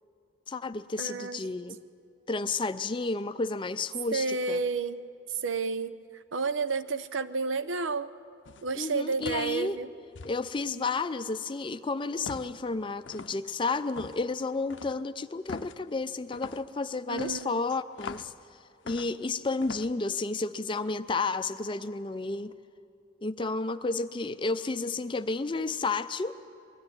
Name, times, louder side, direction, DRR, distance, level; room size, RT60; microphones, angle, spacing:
voice 1, 0.5-1.8 2.3-4.6 8.7-9.8 10.2-18.3 18.8-22.5 23.2-26.3, left 3 dB, 25° left, 11 dB, 0.5 m, -31 dB
voice 2, 1.0-1.5 4.1-5.0 5.3-5.9 6.3-8.1 8.6-9.9 17.1-17.6, right 4 dB, 90° right, 14 dB, 0.7 m, -31 dB
sound 1, 8.5-8.7 9.2-9.6 10.2-10.4 12.3-12.6 13.1-13.4 13.9-14.2 14.7-15.0 15.5-15.8 16.3-16.7 17.2-18.4 18.9-19.3 19.6-19.9, left 4 dB, 75° left, 0.6 m, -42 dB
21.5 x 13.0 x 9.6 m, 2.4 s
head